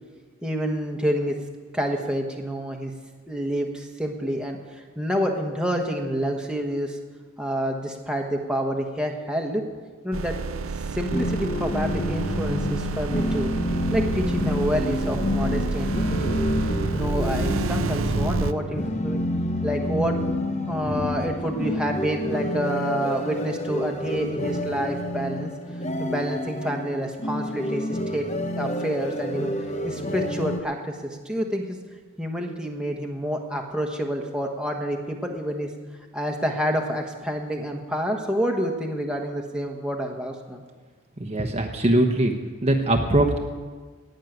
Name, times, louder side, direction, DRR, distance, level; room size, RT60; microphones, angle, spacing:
voice 1, 0.4-1.3 1.7-2.9 3.3-4.6 5.0-7.0 7.4-9.6 10.0-10.4 10.9-13.5 13.9-15.9 16.2-16.4 16.9-19.2 19.6-20.2 20.7-25.5 26.0-29.5 29.8-31.8 32.2-35.7 36.1-40.6, equal, 5° right, 1 dB, 1.3 m, -28 dB
sound 1, 10.1-18.5, right 4 dB, 70° right, 0.5 m, -29 dB
sound 2, 11.1-30.6, left 1 dB, 30° left, 0.8 m, -28 dB
voice 2, 41.2-42.3 42.6-43.4, right 1 dB, 30° right, 3 dB, 1.0 m, -21 dB
18.5 x 6.5 x 9.3 m, 1.5 s
head